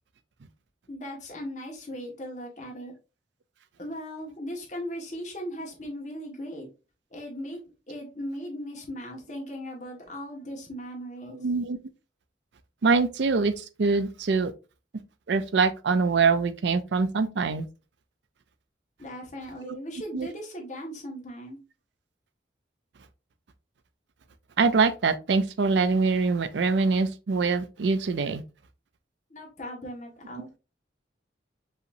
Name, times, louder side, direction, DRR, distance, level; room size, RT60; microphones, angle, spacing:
voice 1, 0.9-2.9 3.8-6.7 7.1-7.6 7.9-11.4 19.0-21.6 29.3-30.6, equal, 40° left, 1.4 m, -38 dB
voice 2, 11.4-11.8 12.8-14.5 15.3-17.6 19.7-19.8 20.1-20.3 24.6-28.4, right 4 dB, 70° right, 0.4 m, -24 dB
5.5 x 2.9 x 2.6 m
head